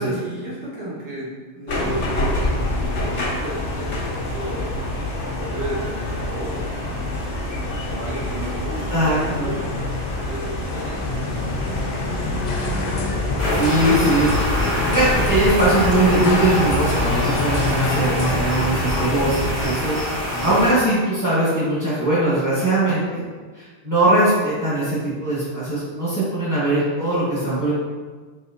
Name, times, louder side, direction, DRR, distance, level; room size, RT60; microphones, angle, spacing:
voice 1, 0.0-4.8 5.3-7.4 7.8-9.7 10.3-11.9 13.0-13.7 20.3-20.5, right 1 dB, 80° right, -9 dB, 1.8 m, -33 dB
sound 1, 1.7-19.7, left 1 dB, 85° left, 1.2 m, -26 dB
voice 2, 8.9-9.5 13.6-14.4 14.8-23.2 23.5-27.7, right 1 dB, 5° left, -10 dB, 1.1 m, -21 dB
sound 2, 12.4-18.4, left 3 dB, 60° left, 0.4 m, -29 dB
sound 3, 13.4-20.7, left 1 dB, 25° right, 1.1 m, -25 dB
4.2 x 3.6 x 2.5 m, 1.4 s
omnidirectional pair, 1.2 m